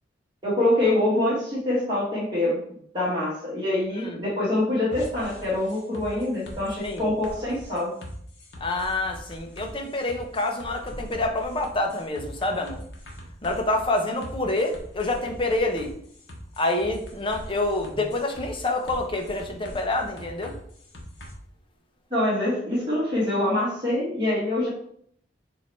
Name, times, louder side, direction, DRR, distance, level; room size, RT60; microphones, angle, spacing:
voice 1, 0.4-2.6 2.9-7.9 22.1-24.7, left 1 dB, 25° right, -9 dB, 2.2 m, -25 dB
sound 1, 4.9-21.3, equal, 80° left, 1.3 m, -42 dB
voice 2, 8.6-12.8 13.4-15.9 16.6-20.5, left 2 dB, 30° left, 3 dB, 0.9 m, -27 dB
7.4 x 2.9 x 4.5 m, 0.65 s
head